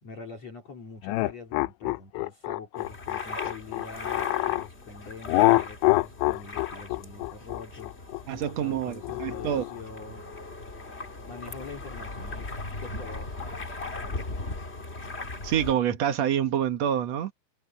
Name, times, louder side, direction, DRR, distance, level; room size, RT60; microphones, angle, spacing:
voice 1, 0.0-10.4 11.2-12.5 12.7-13.8, left 4 dB, 40° left, 3.8 m, -44 dB
sound 1, 1.0-4.7 5.3-9.8, left 21 dB, 85° left, 2.8 m, -26 dB
sound 2, 2.8-15.7, left 2 dB, 55° left, 0.6 m, -39 dB
voice 2, 8.3-9.6 15.4-17.3, right 10 dB, 75° right, 1.5 m, -27 dB
omnidirectional pair, 5.2 m